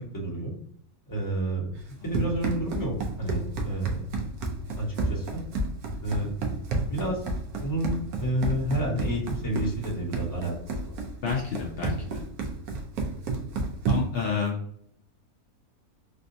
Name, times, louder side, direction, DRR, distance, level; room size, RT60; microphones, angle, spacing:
voice 1, 0.1-0.6 1.1-1.7 2.0-2.9 3.2-4.0 4.8-5.4 6.0-6.3 6.9-7.2 7.6-10.5 10.8-10.9, right 1 dB, 15° left, -3 dB, 1.0 m, -30 dB
Run, 1.8-14.2, right 3 dB, 80° right, 1.2 m, -31 dB
voice 2, 11.2-12.2 13.9-14.6, left 6 dB, 75° left, -1 dB, 0.5 m, -29 dB
3.5 x 2.5 x 2.6 m, 0.67 s
omnidirectional pair, 1.6 m